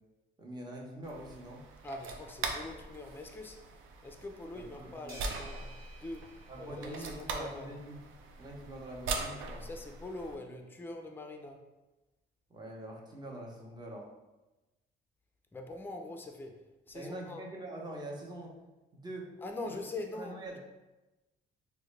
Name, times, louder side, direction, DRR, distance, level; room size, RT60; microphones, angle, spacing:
voice 1, 0.4-1.7 4.5-5.3 6.5-8.0 8.4-9.6 12.5-14.1 16.9-18.6 18.9-19.3 19.6-19.8 20.1-20.6, right 1 dB, 20° right, -1 dB, 0.8 m, -44 dB
sound 1, 1.0-10.4, right 3 dB, 85° right, 0.4 m, -42 dB
voice 2, 1.8-3.6 4.0-5.7 6.0-6.3 6.6-7.8 9.6-11.7 15.5-16.6 16.9-17.4 19.4-20.6, left 2 dB, 10° left, 4 dB, 0.4 m, -43 dB
sound 2, 5.1-7.6, right 2 dB, 45° right, 1.2 m, -54 dB
3.6 x 2.1 x 3.1 m, 1.1 s
cardioid pair, 90°, 20 cm